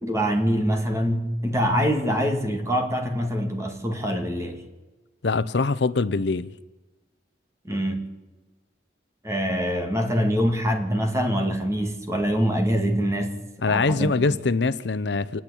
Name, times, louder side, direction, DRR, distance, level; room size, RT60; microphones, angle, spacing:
voice 1, 0.0-4.6 7.6-8.0 9.2-13.3 13.7-14.4, equal, 15° right, 2.1 m, -24 dB
voice 2, 5.2-6.5 13.6-15.4, left 3 dB, 65° left, 0.6 m, -23 dB
27.5 x 9.6 x 9.9 m
head